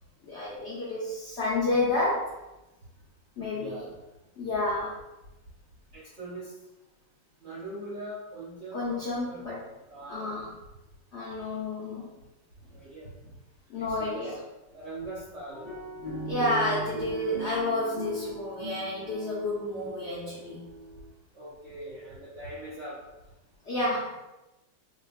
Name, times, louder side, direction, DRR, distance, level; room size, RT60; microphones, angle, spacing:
voice 1, 0.2-2.4 3.4-3.9 4.4-5.0 8.7-9.6 10.1-10.5 11.1-12.1 13.7-14.4 16.3-20.6 23.6-24.2, left 2 dB, 60° left, -8 dB, 0.7 m, -30 dB
voice 2, 3.4-3.9 5.9-6.5 7.4-9.0 9.3-9.4 9.9-10.3 12.7-13.1 13.8-14.3 14.7-15.7 21.3-23.0, right 1 dB, 55° right, -8 dB, 0.8 m, -41 dB
sound 1, 15.5-21.1, right 1 dB, 15° right, 0.4 m, -38 dB
4.4 x 2.4 x 2.4 m, 1.0 s
omnidirectional pair, 2.0 m